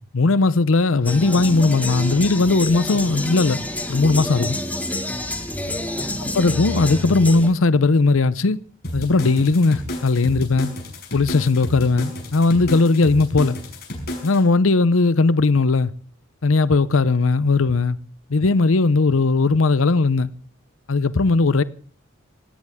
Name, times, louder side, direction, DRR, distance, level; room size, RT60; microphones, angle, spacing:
voice 1, 0.1-3.6 3.9-4.6 6.3-8.6 8.9-10.7 11.1-13.6 14.2-15.9 16.4-18.0 18.3-20.3 20.9-21.6, left 3 dB, 90° left, 0.7 m, -18 dB
sound 1, 1.1-7.5, left 1 dB, 10° left, 1.7 m, -28 dB
sound 2, 8.8-14.4, left 1 dB, 50° left, 5.7 m, -31 dB
18.5 x 17.5 x 3.6 m
head